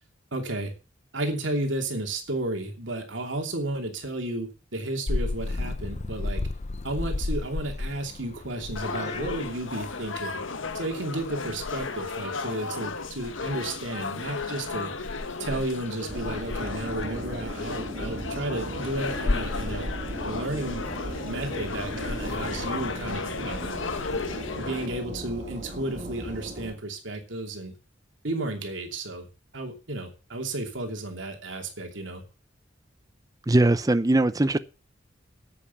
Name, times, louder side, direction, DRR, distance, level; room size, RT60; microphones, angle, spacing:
voice 1, 0.3-0.7 1.1-6.4 6.8-10.4 10.7-14.9 15.4-19.9 20.2-20.8 21.2-23.6 24.6-27.7 28.2-29.3 29.5-32.2, right 1 dB, 70° right, 2.9 m, -33 dB
Purr / Meow, 5.1-24.6, left 2 dB, 40° left, 0.6 m, -36 dB
sound 1, 8.8-24.9, left 4 dB, 80° left, 1.3 m, -35 dB
sound 2, 16.1-26.7, equal, 40° right, 5.0 m, -37 dB
voice 2, 33.5-34.6, right 2 dB, 20° right, 0.6 m, -20 dB
10.0 x 8.6 x 6.9 m
head